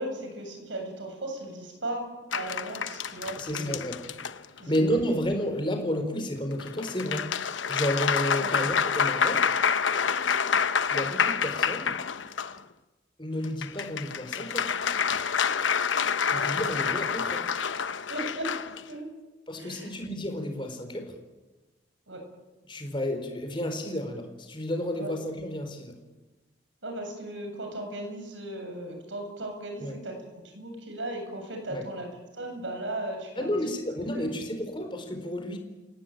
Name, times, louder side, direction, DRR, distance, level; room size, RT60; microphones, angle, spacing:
voice 1, 0.0-3.8 4.6-4.8 8.4-8.5 16.3-16.8 18.1-18.6 18.9-19.1 19.5-19.9 22.1-22.2 24.9-25.1 26.8-33.6 34.1-34.4, right 1 dB, 85° right, 4 dB, 7.9 m, -37 dB
sound 1, 2.3-4.8 6.6-12.6 13.4-18.8, left 6 dB, 90° left, 1.0 m, -28 dB
voice 2, 3.4-4.0 4.7-7.3 7.7-9.5 10.9-12.0 13.2-14.7 16.3-17.5 19.5-21.1 22.7-26.0 29.8-29.9 31.7-31.8 33.4-35.6, equal, 25° left, 5 dB, 4.1 m, -31 dB
30.0 x 17.5 x 9.2 m, 1.2 s
head